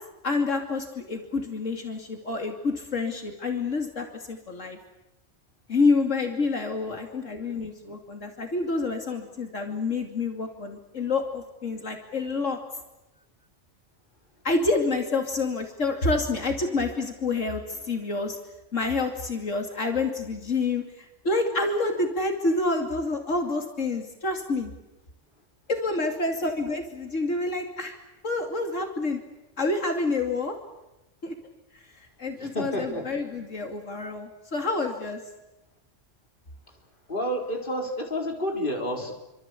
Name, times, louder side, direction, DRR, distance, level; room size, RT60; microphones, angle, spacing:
voice 1, 0.2-4.8 5.7-12.6 14.4-18.4 18.7-24.7 25.7-27.9 28.2-29.2 29.6-30.5 31.2-31.3 32.2-35.2, left 3 dB, 80° left, 3 dB, 3.0 m, -28 dB
voice 2, 32.4-33.0 37.1-39.1, equal, 40° left, 1 dB, 4.5 m, -30 dB
27.5 x 25.5 x 8.4 m, 0.95 s
omnidirectional pair, 1.3 m